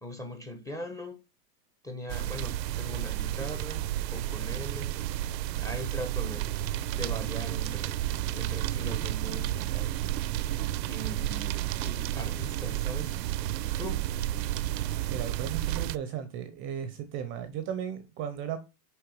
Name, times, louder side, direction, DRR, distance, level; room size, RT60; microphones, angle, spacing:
voice 1, 0.0-1.2 1.8-4.9 5.6-6.5 6.9-8.0 8.3-10.6 10.8-14.0, equal, 5° left, 0.8 m, -41 dB
sound 1, 2.1-16.0, right 13 dB, 85° right, 0.7 m, -31 dB
voice 2, 15.1-18.6, right 8 dB, 25° right, 0.7 m, -35 dB
6.7 x 4.7 x 4.8 m
supercardioid pair, 150°, 49 cm